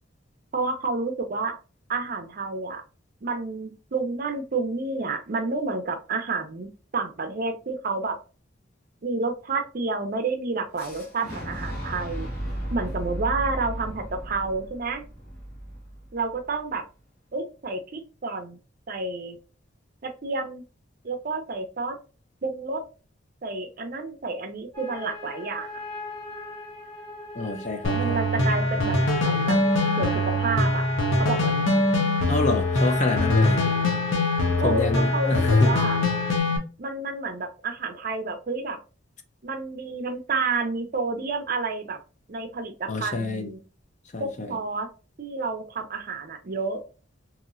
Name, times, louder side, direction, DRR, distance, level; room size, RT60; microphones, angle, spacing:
voice 1, 0.5-1.6 1.9-2.8 3.2-8.2 9.0-12.3 12.7-15.0 16.1-16.9 17.3-18.6 18.9-19.4 20.0-20.6 21.0-22.0 22.4-22.8 23.4-25.7 27.9-29.0 29.2-29.6 30.0-30.8 31.2-31.7 34.6-36.0 36.8-38.8 39.4-42.0 42.3-43.6 44.2-44.9 45.2-46.8, right 3 dB, 50° right, 0.6 m, -30 dB
Boom, 10.8-16.6, right 1 dB, 55° left, 1.4 m, -35 dB
sound 1, 24.7-36.4, left 3 dB, 15° left, 1.2 m, -39 dB
voice 2, 27.3-28.2 32.3-33.6 34.6-35.7 42.9-43.5 44.1-44.6, left 3 dB, 40° left, 0.5 m, -28 dB
sound 2, 27.8-36.6, left 2 dB, 85° left, 0.7 m, -23 dB
3.0 x 2.9 x 2.4 m
head